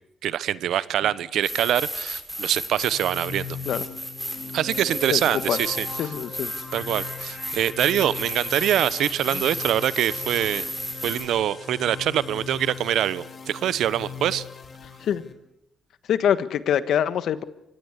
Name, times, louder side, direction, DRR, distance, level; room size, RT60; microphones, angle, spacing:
voice 1, 0.2-3.5 4.5-5.9 6.7-10.7 11.0-14.4, right 11 dB, 75° right, 18 dB, 0.9 m, -24 dB
sound 1, 1.4-11.2, equal, 5° right, 7.9 m, -34 dB
sound 2, 2.8-15.3, left 6 dB, 40° left, 3.8 m, -39 dB
voice 2, 6.0-6.5 9.3-9.4 15.0-15.2 16.1-17.4, left 9 dB, 70° left, 13 dB, 1.4 m, -24 dB
25.0 x 19.5 x 8.2 m, 0.82 s
cardioid pair, 90°, 0 cm